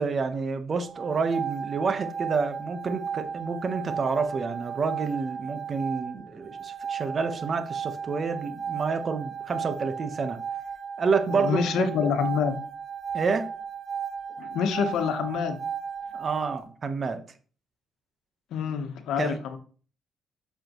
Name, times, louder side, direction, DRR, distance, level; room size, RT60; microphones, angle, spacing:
voice 1, 0.0-10.4 11.0-11.9 13.1-13.5 16.1-17.2 19.2-19.4, right 4 dB, 45° right, 1.0 m, -28 dB
sound 1, 0.8-16.6, right 7 dB, 60° right, 1.7 m, -35 dB
voice 2, 11.3-12.5 14.4-15.6 18.5-19.6, left 7 dB, 80° left, 1.1 m, -27 dB
7.8 x 6.8 x 3.1 m
cardioid pair, 90°, 0 cm